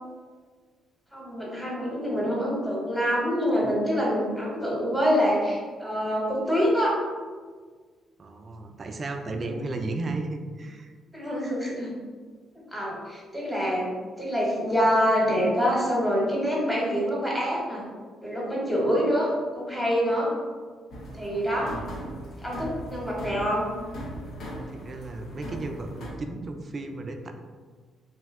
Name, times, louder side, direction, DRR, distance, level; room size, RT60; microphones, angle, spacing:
voice 1, 1.1-7.0 9.4-9.6 11.1-11.9 12.7-13.8 14.2-17.8 18.2-19.3 19.6-20.3 21.1-21.7 22.4-23.7, equal, 5° left, -5 dB, 1.0 m, -26 dB
voice 2, 8.2-10.9 21.6-21.9 24.7-27.3, right 2 dB, 40° right, 5 dB, 0.3 m, -34 dB
sound 1, 20.9-26.1, equal, 70° left, 0.7 m, -39 dB
2.7 x 2.1 x 3.4 m, 1.5 s
cardioid pair, 90°, 0 cm